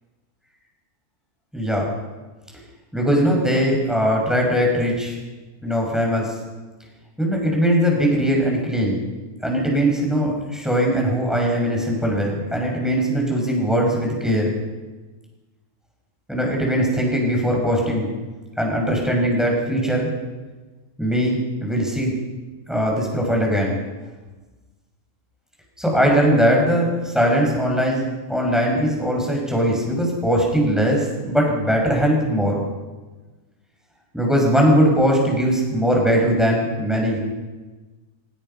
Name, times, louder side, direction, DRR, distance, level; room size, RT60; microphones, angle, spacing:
voice 1, 1.5-1.9 2.9-5.2 5.6-6.3 7.2-9.0 9.4-14.5 16.3-18.1 18.6-20.1 21.0-22.1 22.7-23.8 25.8-32.6 34.1-37.2, equal, ahead, -1 dB, 6.0 m, -20 dB
26.0 x 18.0 x 5.6 m, 1.2 s
omnidirectional pair, 1.5 m